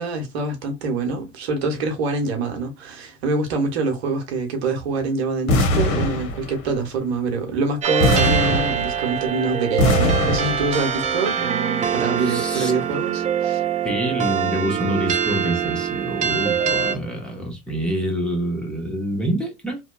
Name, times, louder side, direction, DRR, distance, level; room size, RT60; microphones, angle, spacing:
voice 1, 0.0-13.6, right 3 dB, 85° right, 0.9 m, -25 dB
sound 1, 5.5-6.7 8.0-9.3 9.8-10.9, left 2 dB, 45° left, 0.9 m, -21 dB
sound 2, 7.8-17.0, right 8 dB, 25° right, 0.4 m, -24 dB
voice 2, 12.2-12.7 13.8-19.8, equal, 5° left, 1.1 m, -26 dB
2.6 x 2.2 x 2.2 m
hypercardioid pair, 85°, 31 cm